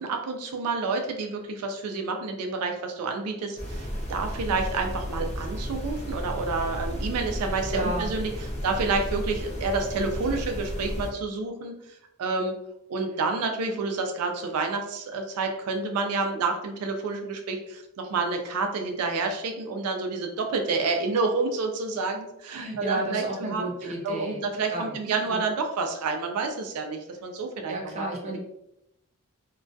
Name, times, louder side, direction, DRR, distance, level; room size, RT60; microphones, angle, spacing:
voice 1, 0.0-8.3 8.6-11.8 12.2-12.5 12.9-23.6 24.0-28.0, right 4 dB, 90° right, 4 dB, 0.4 m, -29 dB
sound 1, 3.6-11.1, equal, 30° left, 0.5 m, -33 dB
voice 2, 7.3-8.1 22.5-25.4 27.7-28.4, right 1 dB, 30° right, -1 dB, 0.5 m, -33 dB
2.2 x 2.1 x 2.5 m, 0.82 s
head